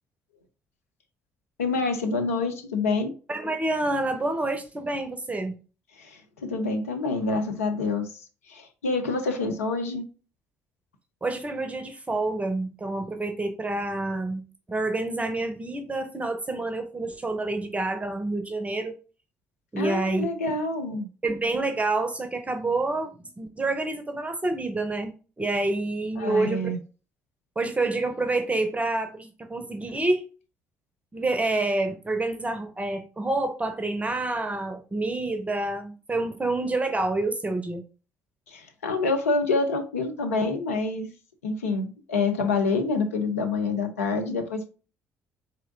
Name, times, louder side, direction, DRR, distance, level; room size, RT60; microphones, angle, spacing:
voice 1, 1.6-3.1 6.0-8.1 8.5-10.0 19.8-21.1 26.2-26.8 38.5-41.1 41.4-44.7, left 3 dB, 75° left, 0.5 m, -27 dB
voice 2, 3.3-5.5 11.2-14.4 14.7-18.9 19.7-20.3 21.2-25.1 25.4-26.6 27.6-30.2 31.1-37.8, right 2 dB, 15° right, 0.6 m, -28 dB
4.2 x 2.6 x 2.6 m
figure-of-eight pair, 50°, 8 cm